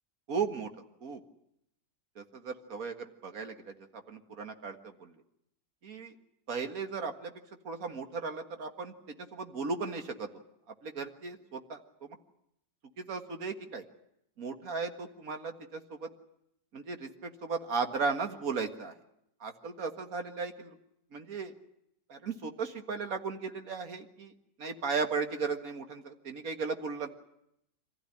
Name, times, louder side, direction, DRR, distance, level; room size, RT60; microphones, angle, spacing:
voice 1, 0.3-0.7 1.0-1.2 2.2-5.2 5.8-6.2 6.5-7.3 7.6-10.3 10.7-12.2 13.0-13.9 14.4-16.1 16.7-19.0 19.4-20.8 21.1-21.5 22.1-24.3 24.6-27.1, right 5 dB, 55° right, 6 dB, 2.1 m, -36 dB
25.0 x 15.5 x 10.0 m, 0.79 s
omnidirectional pair, 1.9 m